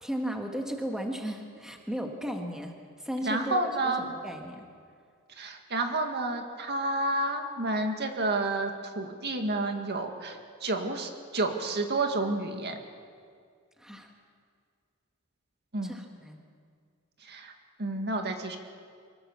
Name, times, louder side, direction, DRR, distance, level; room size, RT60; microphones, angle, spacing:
voice 1, 0.0-4.6 13.8-14.1 15.8-16.4, equal, 5° right, 2 dB, 1.6 m, -35 dB
voice 2, 3.2-4.1 5.4-12.8 15.7-16.0 17.3-17.5 17.8-18.6, right 2 dB, 50° right, 4 dB, 1.9 m, -30 dB
24.5 x 18.0 x 7.3 m, 2.1 s
head